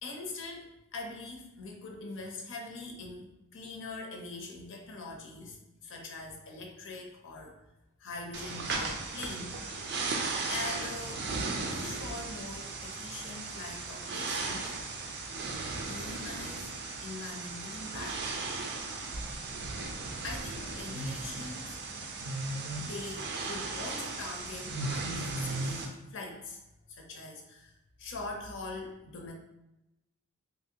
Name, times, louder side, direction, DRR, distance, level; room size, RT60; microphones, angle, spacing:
voice 1, 0.0-7.6 8.0-9.5 10.5-11.4 11.7-14.8 15.8-16.7 17.0-18.2 20.2-21.8 22.8-26.6 26.9-27.7 28.0-29.3, left 3 dB, 60° left, 1 dB, 0.5 m, -42 dB
sound 1, 8.3-25.9, right 3 dB, 50° right, 0.4 m, -36 dB
3.0 x 2.4 x 2.8 m, 0.93 s
head